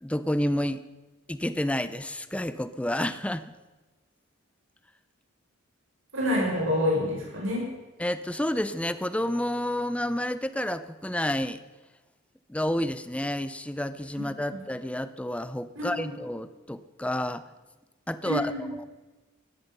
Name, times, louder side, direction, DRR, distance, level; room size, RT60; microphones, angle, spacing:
voice 1, 0.0-0.8 1.3-3.4 8.0-11.6 12.5-17.4 18.1-18.9, left 1 dB, 5° left, 13 dB, 0.5 m, -30 dB
voice 2, 6.1-7.6 14.2-14.3 14.5-14.6 15.7-16.1 18.2-18.7, left 1 dB, 70° right, -3 dB, 6.6 m, -27 dB
17.0 x 13.5 x 5.5 m, 1.2 s
head